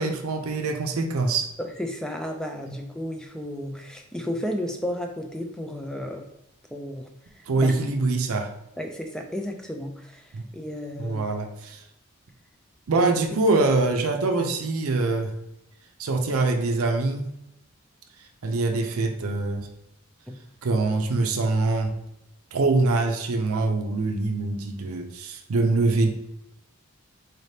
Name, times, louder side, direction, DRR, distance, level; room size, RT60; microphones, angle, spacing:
voice 1, 0.0-1.5 7.5-8.5 10.3-10.4 10.9-11.8 12.9-15.3 16.0-17.3 18.4-19.7 20.6-21.9 22.5-26.1, right 3 dB, 75° right, 4 dB, 0.5 m, -24 dB
voice 2, 1.6-6.2 6.7-7.1 7.4-7.7 8.8-11.2 13.0-13.1, equal, 5° left, 3 dB, 0.3 m, -33 dB
4.1 x 3.3 x 2.7 m, 0.85 s
head